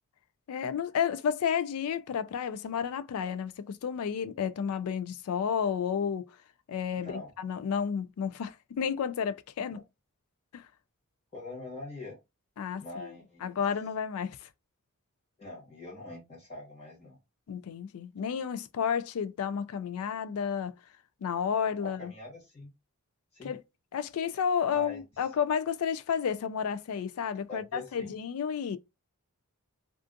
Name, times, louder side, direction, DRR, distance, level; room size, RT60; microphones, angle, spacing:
voice 1, 0.5-6.3 6.7-9.8 10.5-10.7 12.6-13.1 13.4-14.5 17.5-20.8 21.2-22.1 23.4-23.6 23.9-28.8, left 7 dB, 70° left, 0.3 m, -31 dB
voice 2, 6.9-7.3 11.3-12.2 12.8-13.6 15.4-17.2 21.8-22.7 23.3-23.5 24.7-25.0 27.5-28.1, left 2 dB, 30° left, 1.2 m, -43 dB
2.5 x 2.4 x 2.5 m
head